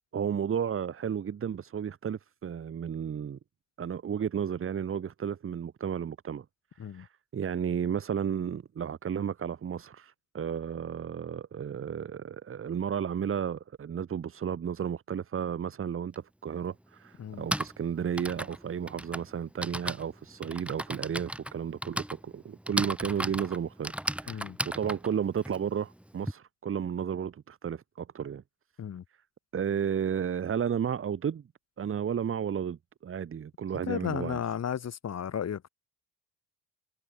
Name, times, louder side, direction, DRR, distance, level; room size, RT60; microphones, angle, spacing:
voice 1, 0.1-3.4 3.8-6.4 6.9-23.9 24.2-28.4 29.5-31.4 31.8-34.4, right 8 dB, 25° right, 1.1 m, -33 dB
Typing, 16.1-16.2 17.2-26.3, right 1 dB, ahead, 2.1 m, -36 dB
voice 2, 24.3-24.6 28.8-29.0 33.8-35.7, left 8 dB, 35° left, 1.5 m, -34 dB
figure-of-eight pair, 50°, 47 cm